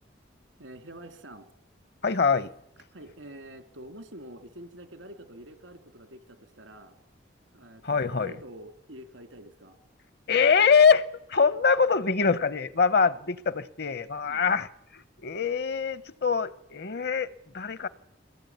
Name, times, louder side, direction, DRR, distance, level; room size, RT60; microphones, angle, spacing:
voice 1, 0.6-1.5 2.9-6.9 7.5-9.8 14.2-14.5, right 1 dB, 85° right, 9 dB, 2.6 m, -46 dB
voice 2, 2.0-2.5 7.8-8.3 10.3-11.0 11.3-14.7 15.2-17.9, left 5 dB, 55° left, 17 dB, 0.8 m, -23 dB
22.5 x 17.5 x 9.3 m, 0.82 s
head